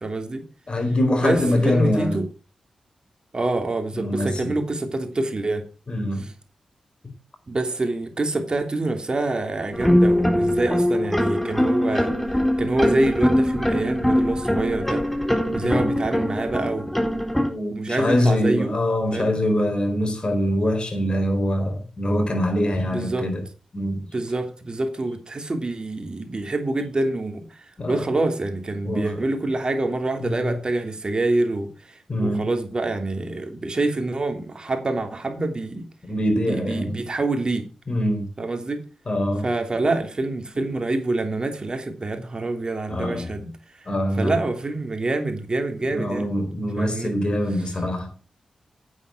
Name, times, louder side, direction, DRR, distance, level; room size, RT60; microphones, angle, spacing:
voice 1, 0.0-0.4 1.2-2.3 3.3-5.6 6.2-6.3 7.5-12.1 12.6-15.1 15.5-17.1 17.7-18.7 19.1-19.3 22.9-23.3 24.1-35.9 36.4-37.7 38.4-38.8 39.4-43.5 44.2-46.3 46.8-47.1, right 2 dB, 40° right, 3.0 m, -26 dB
voice 2, 0.7-2.2 3.9-4.5 5.9-6.2 7.0-7.1 15.6-15.9 17.5-23.4 23.7-24.0 27.8-28.0 28.8-29.2 30.2-30.4 32.1-32.5 36.0-37.0 37.9-38.3 39.1-39.4 42.9-43.4 43.9-44.3 45.9-48.1, left 1 dB, 45° left, 4.1 m, -24 dB
sound 1, 9.7-17.5, left 1 dB, 10° left, 3.5 m, -22 dB
9.1 x 8.1 x 6.1 m
supercardioid pair, 40°, 2 cm